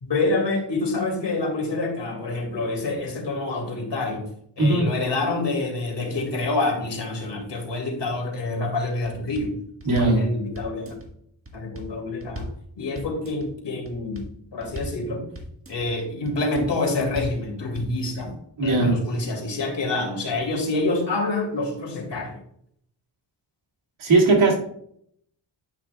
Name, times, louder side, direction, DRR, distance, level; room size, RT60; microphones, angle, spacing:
voice 1, 0.0-4.2 4.6-9.5 9.9-10.9 11.5-12.5 12.8-14.2 14.5-15.2 15.7-18.3 18.6-22.4, left 2 dB, 65° left, 2 dB, 2.5 m, -27 dB
voice 2, 4.6-4.9 9.8-10.3 18.6-19.0 24.0-24.6, right 2 dB, 85° right, -2 dB, 2.2 m, -19 dB
sound 1, 9.0-9.5 9.8-10.2 10.5-11.1 11.4-11.9 12.2-12.6 12.9-13.5 13.8-14.3 14.6-15.0 15.3-15.9 16.2-16.7 17.0-17.4 17.7-18.3 18.6-18.7, equal, 30° right, 1.5 m, -37 dB
10.5 x 5.9 x 2.3 m, 0.69 s
cardioid pair, 75°, 47 cm